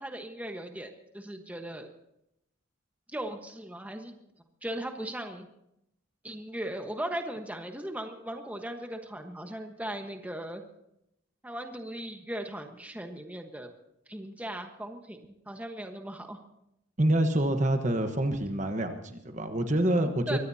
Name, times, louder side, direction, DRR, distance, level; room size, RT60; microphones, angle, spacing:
voice 1, 0.0-1.9 3.1-4.2 4.6-5.5 6.2-10.6 11.4-13.7 14.1-16.4 20.3-20.4, right 1 dB, 5° right, 4 dB, 1.2 m, -38 dB
voice 2, 17.0-20.4, right 1 dB, 35° right, 6 dB, 1.2 m, -26 dB
23.5 x 17.0 x 2.8 m, 0.79 s
head